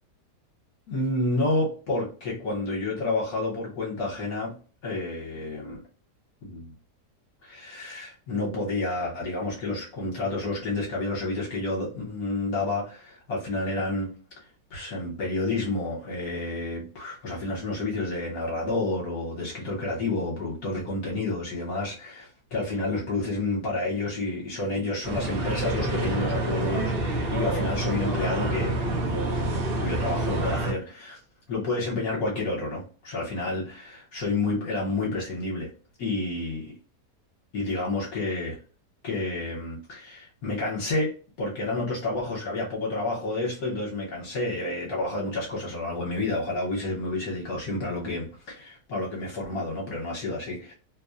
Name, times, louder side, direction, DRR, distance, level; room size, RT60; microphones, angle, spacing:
voice 1, 0.9-4.5 4.8-5.8 6.4-6.7 7.4-14.1 14.7-31.2 31.5-35.7 36.0-36.7 37.5-38.6 39.0-50.7, left 2 dB, 60° left, -3 dB, 1.2 m, -30 dB
sound 1, 25.0-30.7, right 2 dB, 75° right, 0.5 m, -27 dB
2.8 x 2.0 x 2.3 m, 0.37 s
omnidirectional pair, 1.7 m